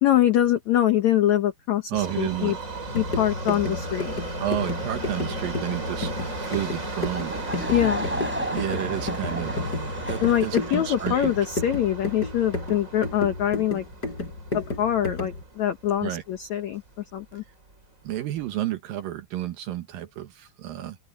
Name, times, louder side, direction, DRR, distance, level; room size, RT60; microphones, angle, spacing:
voice 1, 0.0-2.6 2.9-4.1 7.7-8.1 10.2-13.8 14.5-16.8 17.1-17.4, left 11 dB, 75° left, 1.7 m, -24 dB
Subway metro underground, 1.9-16.1 16.4-16.5 17.3-17.4 17.7-17.8 18.4-18.5, right 2 dB, 20° right, 4.5 m, -35 dB
voice 2, 1.9-2.6 4.4-6.1 6.5-7.4 8.5-9.5 10.1-11.3 16.0-16.2 18.0-21.0, right 12 dB, 70° right, 2.5 m, -31 dB
sound 1, 2.8-15.4, left 2 dB, 25° left, 4.9 m, -33 dB
Laughter / Crowd, 7.1-11.3, right 1 dB, 5° right, 3.8 m, -34 dB
open air
omnidirectional pair, 4.9 m